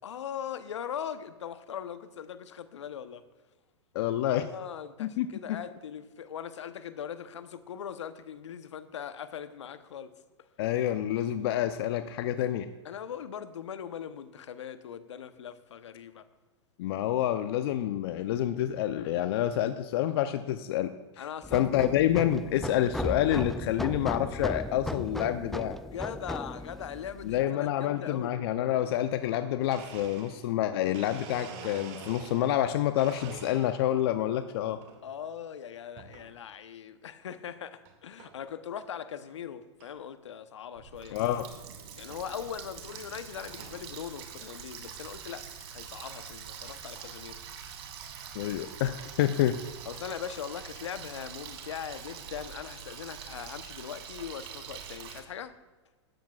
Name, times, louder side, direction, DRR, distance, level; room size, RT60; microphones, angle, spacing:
voice 1, 0.0-3.2 4.3-10.1 12.8-16.2 21.2-21.8 25.7-28.4 35.0-41.2 42.0-47.4 49.8-55.5, left 8 dB, 75° left, 11 dB, 0.9 m, -40 dB
voice 2, 3.9-4.5 5.0-5.6 10.6-12.7 16.8-20.9 21.2-21.3 21.5-25.8 27.2-34.8 41.1-41.5 48.3-49.6, left 12 dB, 55° left, 10 dB, 0.6 m, -28 dB
sound 1, 21.4-27.4, left 1 dB, ahead, 0.3 m, -36 dB
Domestic sounds home sounds, 29.7-32.6 33.0-34.0 34.5-35.0 36.0-36.3 36.9-37.0 37.8-37.9 38.2-38.5 39.0-39.1 39.2-39.3 39.8-39.9 41.2-41.3 42.1-42.3 42.9-43.8, right 6 dB, 45° right, 2.2 m, -47 dB
Water tap faucet, 40.8-55.2, right 8 dB, 60° right, 2.4 m, -44 dB
17.5 x 13.0 x 2.4 m, 1.2 s
hypercardioid pair, 110°, 15 cm